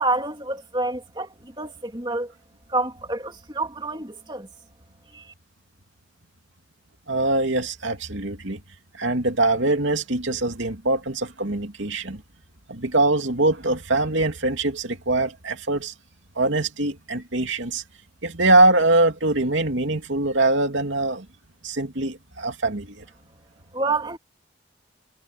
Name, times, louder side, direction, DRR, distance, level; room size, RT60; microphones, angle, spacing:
voice 1, 0.0-2.3 2.7-4.5 5.1-5.2 23.7-24.2, right 2 dB, 25° right, 3.0 m, -28 dB
voice 2, 7.1-8.6 8.9-12.2 12.7-15.9 16.4-17.8 18.2-21.3 21.6-23.0, right 2 dB, 75° right, 2.6 m, -23 dB
head